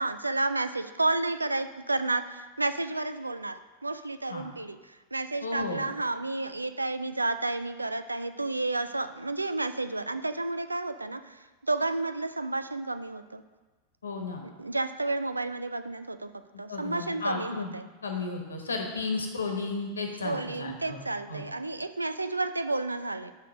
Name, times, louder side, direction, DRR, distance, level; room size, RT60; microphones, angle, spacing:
voice 1, 0.0-13.4 14.4-16.3 16.6-17.9 20.2-23.3, right 2 dB, 80° right, 11 dB, 0.4 m, -31 dB
voice 2, 5.4-5.8 14.0-14.4 16.7-17.7 18.0-21.4, left 3 dB, 75° left, 3 dB, 1.1 m, -34 dB
6.3 x 5.8 x 6.2 m, 1.2 s
figure-of-eight pair, 90°, 0 cm